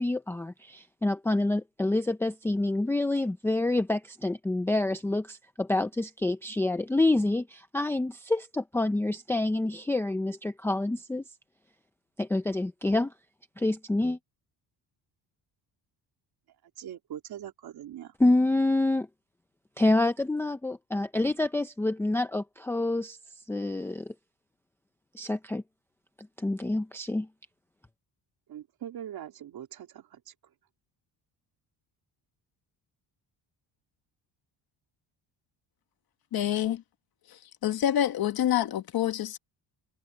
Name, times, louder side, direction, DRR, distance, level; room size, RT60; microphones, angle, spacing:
voice 1, 0.0-11.2 12.2-13.1 13.6-14.2 18.2-19.1 19.8-23.2 23.5-24.1 25.1-25.6 26.4-27.3, left 2 dB, 5° left, 0.6 m, -27 dB
voice 2, 16.8-18.1 28.5-30.3, right 10 dB, 55° right, 3.4 m, -42 dB
voice 3, 36.3-36.8 37.6-39.4, left 11 dB, 55° left, 1.5 m, -27 dB
cardioid pair, 165°, 43 cm